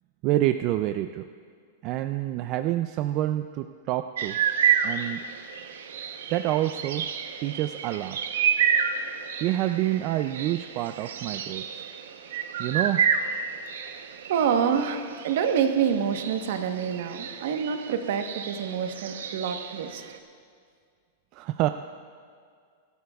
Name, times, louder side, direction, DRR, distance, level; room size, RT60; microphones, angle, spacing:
voice 1, 0.2-1.2 1.8-4.4 4.8-5.2 6.3-7.1 7.4-8.4 9.4-11.8 12.6-13.0 21.3-21.7, right 14 dB, 35° right, 9 dB, 0.3 m, -27 dB
sound 1, 4.2-20.2, right 8 dB, 85° right, 0.8 m, -30 dB
voice 2, 14.3-20.0, right 7 dB, 60° right, 6 dB, 1.1 m, -27 dB
22.5 x 12.5 x 2.4 m, 2.1 s
supercardioid pair, 160°, 0 cm